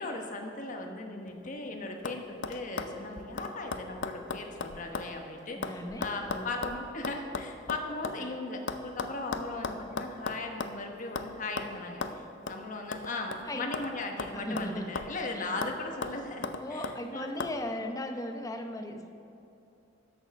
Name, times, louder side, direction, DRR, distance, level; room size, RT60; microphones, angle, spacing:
voice 1, 0.0-17.3, left 2 dB, 45° left, 3 dB, 1.1 m, -38 dB
sound 1, 1.3-1.7 2.0-2.2 2.4-5.1 5.4-8.2 8.7-10.8 11.2-11.3 11.6-11.7 12.0-12.2 12.5-12.6 12.9-13.9 14.2-15.2 15.6-15.8 16.0-17.0 17.4-17.5, left 4 dB, 70° left, 0.5 m, -36 dB
voice 2, 5.5-6.6 8.2-8.3 13.5-13.6 14.3-15.0 15.3-15.6 16.6-19.1, left 1 dB, 20° left, 4 dB, 0.7 m, -37 dB
13.0 x 6.5 x 5.2 m, 2.8 s
head